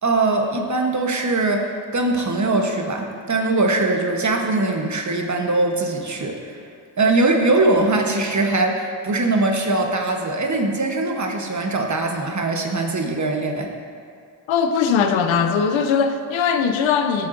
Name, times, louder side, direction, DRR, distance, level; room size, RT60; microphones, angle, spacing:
voice 1, 0.0-6.4 7.0-13.7, right 2 dB, 40° right, 2 dB, 1.1 m, -21 dB
voice 2, 14.5-17.3, left 6 dB, 85° left, 7 dB, 0.7 m, -20 dB
11.5 x 7.1 x 2.6 m, 2.3 s
cardioid pair, 60°, 45 cm